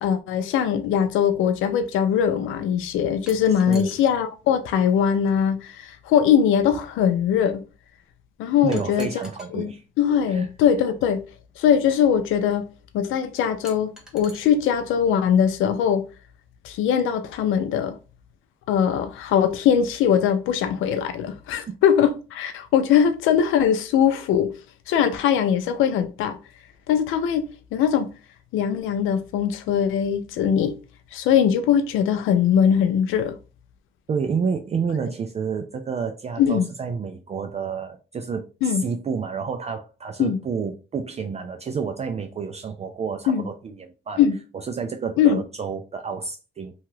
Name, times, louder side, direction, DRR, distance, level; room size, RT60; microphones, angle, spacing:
voice 1, 0.0-7.6 8.4-9.1 9.5-11.2 11.6-12.6 12.9-16.0 16.6-18.0 18.7-24.5 24.9-26.4 26.9-28.1 28.5-30.8 31.1-33.4 36.4-36.7 38.6-38.9 40.2-40.4 43.3-43.5 44.2-44.4 45.2-45.4, left 8 dB, 85° left, 0.4 m, -21 dB
sound 1, 3.3-4.1 5.4-5.5 8.7-9.5 11.0-11.1 13.6-14.4, equal, 5° right, 0.9 m, -44 dB
voice 2, 3.7-4.0 8.6-9.8 10.3-10.5 34.1-44.2 44.5-46.7, right 6 dB, 35° right, 0.4 m, -29 dB
2.8 x 2.3 x 3.0 m
cardioid pair, 90°, 20 cm